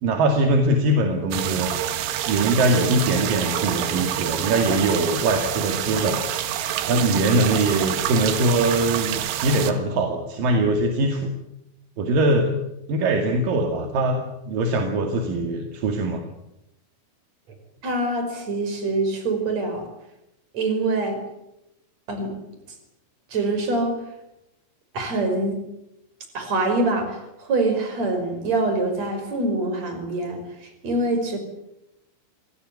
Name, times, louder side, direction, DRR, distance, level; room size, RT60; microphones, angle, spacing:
voice 1, 0.0-1.7 2.3-6.2 6.9-11.3 12.0-12.5 12.9-16.2, right 2 dB, 55° right, 5 dB, 3.4 m, -22 dB
sound 1, 1.3-9.7, right 11 dB, 80° right, 4.0 m, -27 dB
voice 2, 17.8-19.9 20.5-21.2 22.1-22.4 23.3-24.0 24.9-25.6 26.3-31.4, right 2 dB, 35° right, 6 dB, 6.3 m, -25 dB
26.0 x 18.0 x 9.6 m, 0.86 s
omnidirectional pair, 5.6 m